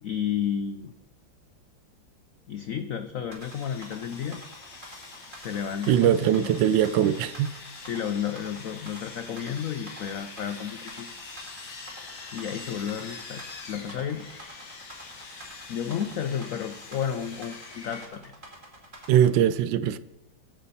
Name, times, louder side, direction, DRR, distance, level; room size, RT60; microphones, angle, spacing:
voice 1, 0.0-1.0 2.5-4.4 5.3-6.5 7.8-11.1 12.3-13.4 13.7-14.3 15.7-18.2, left 8 dB, 80° left, 0.7 m, -32 dB
sound 1, 3.3-19.4, right 1 dB, 25° right, 2.2 m, -47 dB
Sawing, 3.4-18.1, left 4 dB, 60° left, 2.2 m, -44 dB
voice 2, 5.9-7.5 19.1-20.0, right 10 dB, 75° right, 1.2 m, -21 dB
14.0 x 8.7 x 4.1 m
omnidirectional pair, 2.1 m